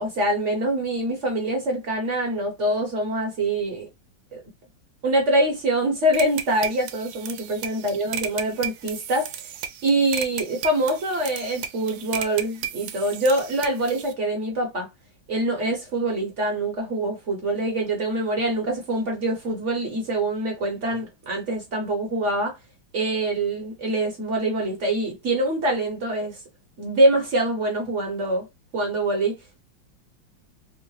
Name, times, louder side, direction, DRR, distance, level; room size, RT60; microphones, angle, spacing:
voice 1, 0.0-3.9 4.3-4.4 5.0-9.3 9.8-14.9 15.3-22.6 22.9-26.4 26.8-28.5 28.7-29.4, right 1 dB, 50° right, 1.0 m, -24 dB
sound 1, 6.1-14.1, right 9 dB, 80° right, 1.3 m, -34 dB
3.6 x 2.1 x 3.0 m
omnidirectional pair, 2.1 m